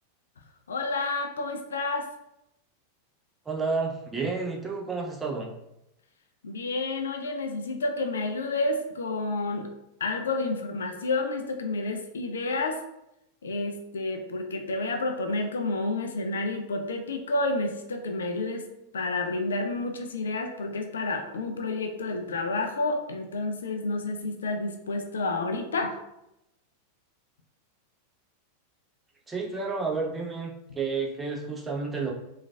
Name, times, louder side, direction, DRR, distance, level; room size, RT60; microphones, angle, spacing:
voice 1, 0.7-2.1 6.4-9.7 10.0-12.8 13.4-18.7 18.9-26.0, left 2 dB, 70° left, 4 dB, 0.3 m, -30 dB
voice 2, 3.5-5.5 29.3-32.1, right 4 dB, 15° right, -1 dB, 0.5 m, -31 dB
3.2 x 2.3 x 2.2 m, 0.86 s
figure-of-eight pair, 90°, 0 cm